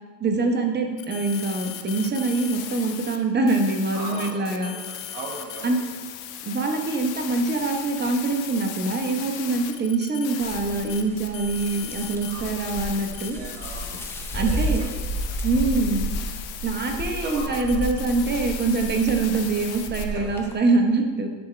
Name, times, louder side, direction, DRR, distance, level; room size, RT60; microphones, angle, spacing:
voice 1, 0.2-4.7 5.6-5.8 6.5-13.4 14.3-14.8 15.4-16.1 16.6-21.3, right 3 dB, 20° right, 3 dB, 1.0 m, -24 dB
sound 1, 1.0-3.2 3.5-20.0, left 11 dB, 50° left, 0.8 m, -37 dB
voice 2, 3.9-4.8 5.1-5.8 12.2-12.5 13.3-13.8 14.3-14.9 15.3-15.7 17.2-17.5 17.7-17.8 20.1-20.3, right 3 dB, 60° right, 0 dB, 1.9 m, -37 dB
sound 2, 10.4-20.5, right 1 dB, 5° left, 0.7 m, -32 dB
10.5 x 3.7 x 3.3 m, 1.3 s
hypercardioid pair, 95°, 49 cm